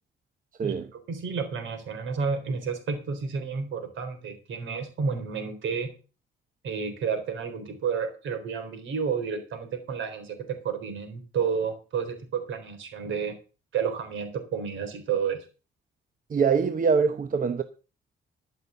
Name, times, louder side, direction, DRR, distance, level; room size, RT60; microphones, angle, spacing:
voice 1, 0.6-5.9 6.6-13.4 13.7-15.5, right 6 dB, 75° right, 3.8 m, -31 dB
voice 2, 16.3-17.6, right 5 dB, 45° right, 1.0 m, -23 dB
13.0 x 6.1 x 7.0 m
cardioid pair, 90°, 20 cm